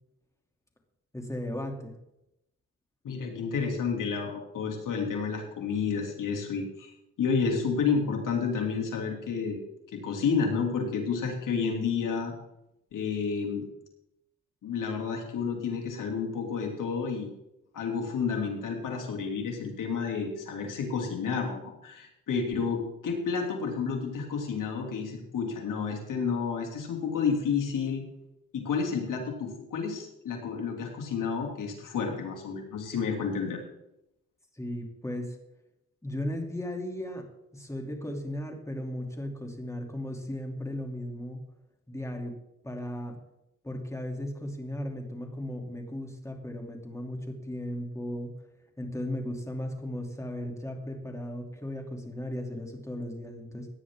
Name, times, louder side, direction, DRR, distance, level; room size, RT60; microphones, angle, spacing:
voice 1, 1.1-1.9 34.5-35.4 36.0-37.3 37.5-41.4 41.9-42.3 42.6-43.2 43.6-48.3 48.8-53.7, left 1 dB, 10° left, 2 dB, 2.9 m, -36 dB
voice 2, 3.0-6.9 7.2-9.6 9.9-12.3 12.9-13.7 14.6-17.3 17.7-28.0 28.5-33.6, left 5 dB, 80° left, 2 dB, 2.7 m, -30 dB
17.0 x 9.8 x 3.7 m, 0.85 s
cardioid pair, 90°, 31 cm